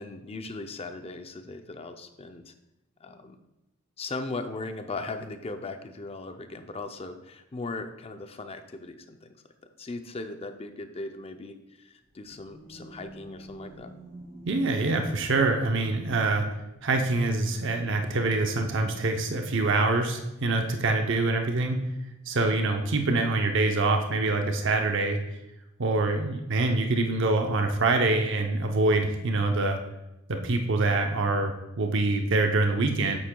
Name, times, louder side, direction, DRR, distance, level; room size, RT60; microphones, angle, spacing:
voice 1, 0.0-2.5 3.0-3.4 4.0-9.4 9.8-13.9, left 3 dB, 30° left, 7 dB, 0.5 m, -38 dB
sound 1, 12.0-16.8, equal, 35° right, 2.3 m, -47 dB
voice 2, 14.4-16.5 16.8-21.8 22.3-25.2 25.8-29.8 30.3-33.2, right 2 dB, 65° right, 4 dB, 0.7 m, -25 dB
8.6 x 7.5 x 2.3 m, 0.93 s
head